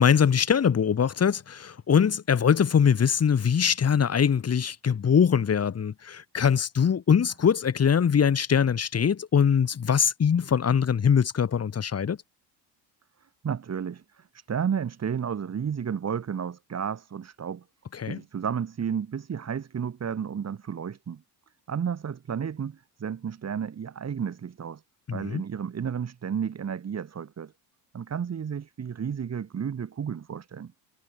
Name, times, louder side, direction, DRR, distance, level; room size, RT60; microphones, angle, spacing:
voice 1, 0.0-12.2 17.9-18.2 25.1-25.4, left 7 dB, 35° left, 4.3 m, -22 dB
voice 2, 13.4-17.6 18.1-21.2 21.7-24.8 25.1-27.5 27.9-30.7, right 7 dB, 35° right, 5.3 m, -32 dB
cardioid pair, 115°, 44 cm